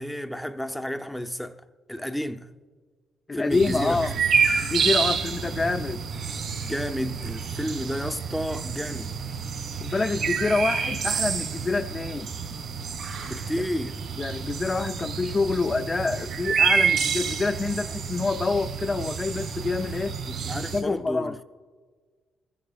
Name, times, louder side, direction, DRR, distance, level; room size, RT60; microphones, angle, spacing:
voice 1, 0.0-1.6 1.9-2.5 3.3-4.0 6.6-9.1 13.2-14.0 20.3-21.4, equal, 5° left, 0.7 m, -31 dB
voice 2, 3.3-4.1 4.6-6.0 9.8-12.3 14.2-20.2 20.6-21.4, left 3 dB, 30° left, 0.4 m, -27 dB
sound 1, 3.5-20.8, right 6 dB, 70° right, 2.4 m, -28 dB
25.5 x 15.0 x 2.4 m
cardioid pair, 90°, 0 cm